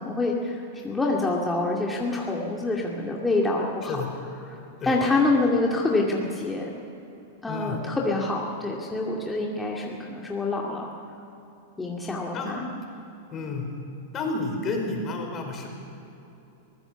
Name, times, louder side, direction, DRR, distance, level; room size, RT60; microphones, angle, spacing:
voice 1, 0.0-4.0 4.5-4.6 4.8-6.7 7.4-10.9 11.8-12.6, left 2 dB, 10° left, -2 dB, 2.4 m, -26 dB
voice 2, 7.5-7.8 12.3-12.6 13.3-13.7 14.1-15.7, left 3 dB, 30° left, 2 dB, 5.2 m, -30 dB
23.0 x 16.5 x 7.1 m, 2.9 s
hypercardioid pair, 110°, 0 cm